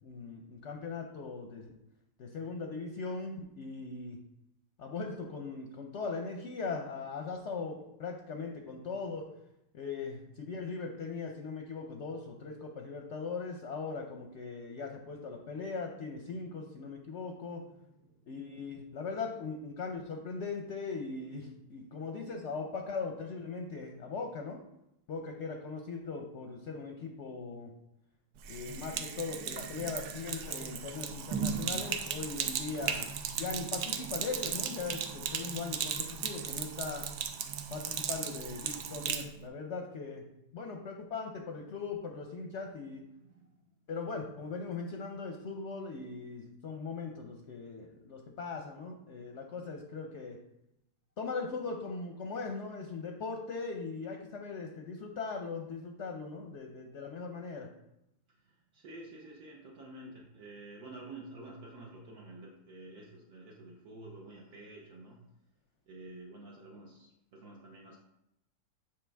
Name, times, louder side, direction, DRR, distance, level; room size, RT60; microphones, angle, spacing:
voice 1, 0.0-1.7 2.2-4.2 4.8-9.3 9.7-17.6 18.3-24.6 25.1-27.7 28.5-37.1 37.7-40.2 40.5-43.0 43.9-50.4 51.2-57.7, left 4 dB, 55° left, 3 dB, 0.8 m, -39 dB
voice 2, 17.5-18.6 43.1-43.6 58.3-65.2 65.9-68.0, right 2 dB, 65° right, -2 dB, 1.4 m, -50 dB
Sink (filling or washing), 28.4-39.3, right 7 dB, 80° right, 1.3 m, -36 dB
8.6 x 4.9 x 3.4 m, 0.85 s
omnidirectional pair, 1.9 m